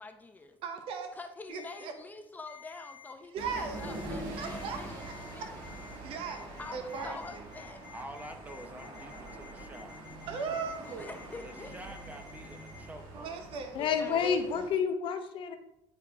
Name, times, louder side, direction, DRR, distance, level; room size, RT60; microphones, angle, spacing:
voice 1, 0.0-0.6 1.2-5.0 5.3-5.6 6.6-7.8 10.9-12.0 13.8-14.2, left 3 dB, 15° left, 7 dB, 0.7 m, -46 dB
voice 2, 0.6-1.2 1.5-1.9 3.3-5.5 6.0-7.5 10.3-11.1 13.1-14.7, right 5 dB, 70° right, 6 dB, 0.9 m, -39 dB
Ringtone, 1.5-1.8 2.5-3.1 3.7-4.1 4.4-4.7 5.0-5.3 5.6-5.9 6.2-12.9, left 9 dB, 50° right, 2.3 m, -53 dB
sound 1, 3.4-14.7, right 2 dB, 90° right, 1.9 m, -44 dB
voice 3, 7.9-10.0 11.4-13.4, right 1 dB, 15° right, 5 dB, 0.8 m, -47 dB
voice 4, 13.7-15.6, left 6 dB, 60° left, 7 dB, 0.8 m, -29 dB
9.5 x 4.6 x 3.6 m, 0.84 s
cardioid pair, 140°, 10 cm